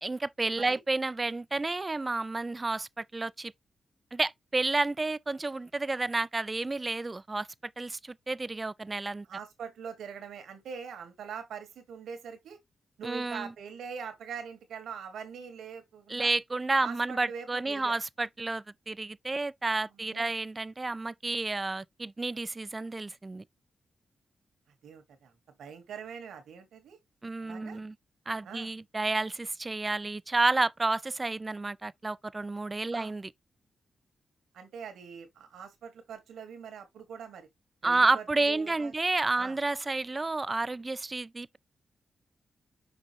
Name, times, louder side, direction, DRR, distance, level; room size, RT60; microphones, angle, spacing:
voice 1, 0.0-3.5 4.1-7.5 7.8-9.3 13.0-13.5 16.1-23.4 27.2-27.9 28.3-33.3 37.8-41.6, right 3 dB, 30° right, 0.4 m, -30 dB
voice 2, 9.3-12.6 13.0-16.3 16.8-18.0 19.9-20.3 24.8-25.3 25.6-27.0 27.4-27.8 28.4-28.7 32.9-33.1 34.5-37.5 37.8-38.9 39.4-39.6, right 6 dB, 90° right, 1.9 m, -43 dB
6.1 x 5.1 x 3.1 m
cardioid pair, 70°, 0 cm